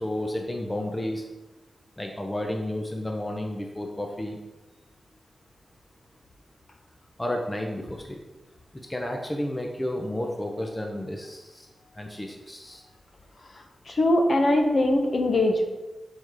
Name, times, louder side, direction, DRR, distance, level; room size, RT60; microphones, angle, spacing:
voice 1, 0.0-1.2 2.0-4.4 7.2-8.2 8.9-11.7 12.0-12.8, left 1 dB, 15° left, 1 dB, 0.8 m, -31 dB
voice 2, 13.9-15.7, left 1 dB, 45° left, 3 dB, 1.1 m, -21 dB
7.0 x 4.7 x 4.8 m, 1.1 s
wide cardioid pair, 110°, 0 cm